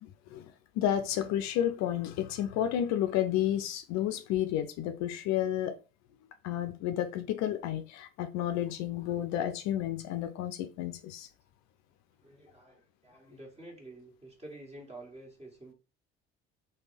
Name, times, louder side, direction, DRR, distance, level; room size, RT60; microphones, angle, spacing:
voice 1, 0.0-0.5 0.8-5.7 6.4-11.3, left 11 dB, 65° left, 0.5 m, -31 dB
voice 2, 12.2-15.7, right 2 dB, 20° right, 1.6 m, -49 dB
3.3 x 2.2 x 3.2 m
hypercardioid pair, 60°, 30 cm